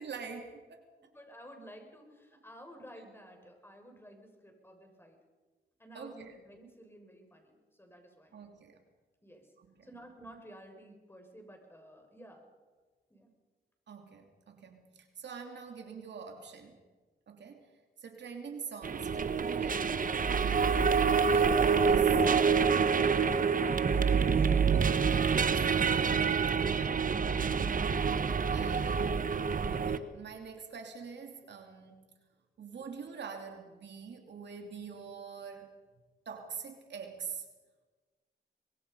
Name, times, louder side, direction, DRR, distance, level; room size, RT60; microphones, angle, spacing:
voice 1, 0.0-0.8 5.9-6.3 8.3-8.8 9.6-9.9 13.9-16.8 17.3-17.7 18.0-22.2 26.6-27.1 27.6-29.2 29.7-32.1 32.6-35.7 36.2-37.4, right 6 dB, 70° right, 4 dB, 3.0 m, -45 dB
voice 2, 1.0-5.2 5.8-8.4 9.2-9.4 9.8-12.4 13.1-13.3 24.2-24.5, right 1 dB, 10° left, 3 dB, 6.6 m, -52 dB
sound 1, 18.8-30.0, right 6 dB, 45° right, 1.3 m, -27 dB
24.5 x 22.0 x 5.6 m, 1.3 s
cardioid pair, 70°, 19 cm